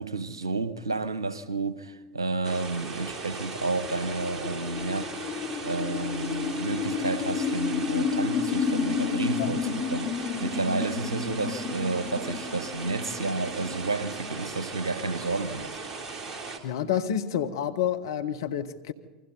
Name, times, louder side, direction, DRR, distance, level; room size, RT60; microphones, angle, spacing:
voice 1, 0.0-5.1 5.6-15.8, right 3 dB, 85° right, 1.0 m, -31 dB
sound 1, 2.4-16.6, right 4 dB, 25° right, 3.4 m, -38 dB
sound 2, 2.9-15.0, left 6 dB, 35° left, 1.8 m, -32 dB
voice 2, 16.6-18.9, left 9 dB, 65° left, 1.3 m, -29 dB
28.0 x 24.5 x 4.1 m
figure-of-eight pair, 80°, 2 cm